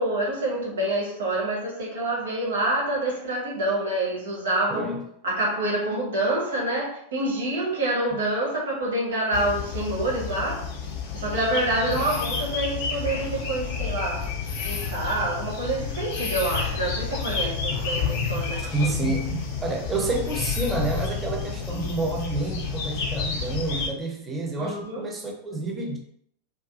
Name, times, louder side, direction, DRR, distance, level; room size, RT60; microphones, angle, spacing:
voice 1, 0.0-4.9 5.2-10.6 11.1-14.3 14.6-19.4 24.6-25.0, right 1 dB, 60° right, -3 dB, 0.8 m, -27 dB
voice 2, 4.7-5.0 8.1-8.2 11.9-12.1 18.6-26.0, right 3 dB, 15° right, 0 dB, 0.6 m, -29 dB
sound 1, 9.3-23.9, left 5 dB, 50° left, 0.4 m, -30 dB
2.5 x 2.4 x 2.4 m, 0.70 s
figure-of-eight pair, 90°, 0 cm